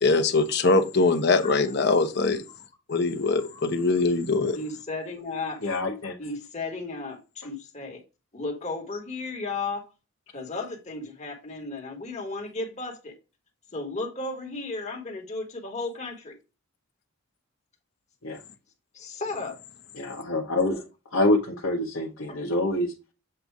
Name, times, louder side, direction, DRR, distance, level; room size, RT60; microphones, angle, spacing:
voice 1, 0.0-2.4 2.9-4.6, left 3 dB, 55° left, 0.9 m, -22 dB
voice 2, 3.3-3.6 4.5-5.6 6.2-8.0 8.3-9.9 10.3-13.1 13.7-16.4 18.9-19.6 22.3-22.4, left 3 dB, 35° left, 1.6 m, -34 dB
voice 3, 5.6-6.1 18.2-18.4 20.0-20.8 21.1-22.9, left 2 dB, 80° left, 1.0 m, -26 dB
7.7 x 2.7 x 4.7 m
head